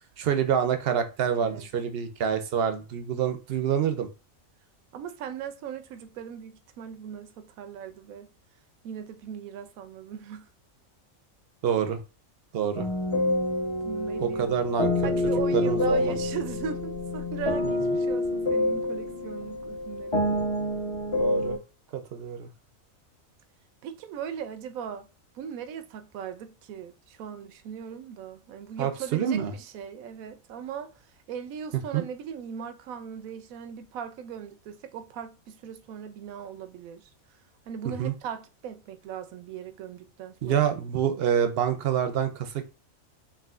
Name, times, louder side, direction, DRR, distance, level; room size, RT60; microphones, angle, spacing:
voice 1, 0.2-4.1 11.6-12.0 12.5-12.9 14.2-15.1 15.5-16.2 21.2-21.6 21.9-22.5 28.8-29.5 31.9-32.0 38.0-38.1 40.4-42.7, right 8 dB, 60° right, 0.6 m, -27 dB
voice 2, 4.9-8.3 8.8-10.5 13.8-14.6 15.0-20.2 23.8-25.1 25.3-30.9 31.3-37.1 37.7-40.7, right 8 dB, 85° right, 1.0 m, -38 dB
sound 1, 12.8-21.6, left 2 dB, 30° left, 0.7 m, -27 dB
4.8 x 3.0 x 2.4 m
omnidirectional pair, 1.4 m